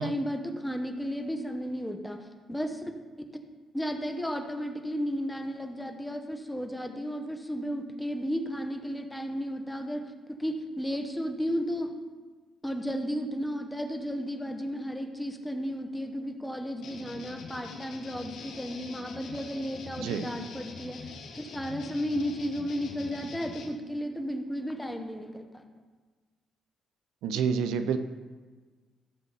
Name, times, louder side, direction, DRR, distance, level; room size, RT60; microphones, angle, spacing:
voice 1, 0.0-2.8 3.7-10.0 10.4-11.9 12.6-25.6, equal, 5° left, 4 dB, 1.3 m, -33 dB
sound 1, 16.8-23.7, left 4 dB, 70° left, 1.4 m, -44 dB
voice 2, 27.2-28.0, right 7 dB, 90° right, 10 dB, 0.6 m, -28 dB
14.5 x 7.2 x 4.2 m, 1.4 s
cardioid pair, 90°, 0 cm